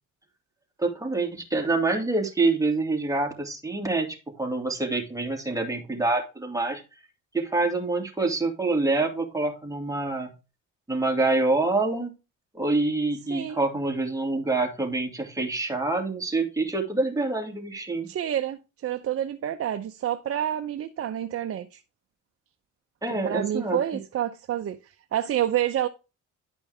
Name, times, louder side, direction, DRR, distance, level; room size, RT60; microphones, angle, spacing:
voice 1, 0.8-6.8 7.3-10.3 10.9-12.1 12.5-18.1 23.0-23.8, right 3 dB, 10° right, 2.3 m, -26 dB
voice 2, 18.1-21.8 23.1-25.9, right 11 dB, 50° right, 0.7 m, -28 dB
11.0 x 5.2 x 3.4 m
cardioid pair, 90°, 30 cm